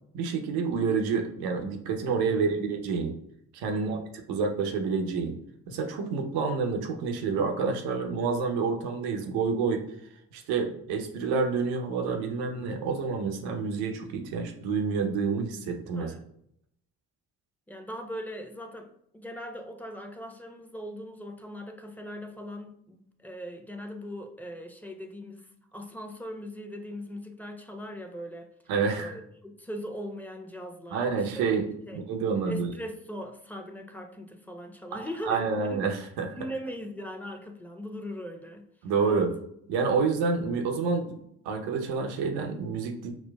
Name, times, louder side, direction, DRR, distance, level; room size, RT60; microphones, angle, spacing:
voice 1, 0.1-3.2 3.5-4.0 4.3-5.4 5.7-9.9 10.3-16.1 28.7-29.1 30.9-31.7 31.9-32.7 34.9-36.4 38.8-39.3 39.7-41.2 41.4-43.1, right 5 dB, 80° right, 4 dB, 0.7 m, -28 dB
voice 2, 3.7-4.0 16.0-16.2 17.7-28.5 28.9-31.5 31.9-32.0 32.5-36.1 36.3-38.7 39.0-39.3, equal, 5° left, 4 dB, 0.8 m, -40 dB
6.0 x 2.2 x 2.3 m, 0.72 s
hypercardioid pair, 40°, 38 cm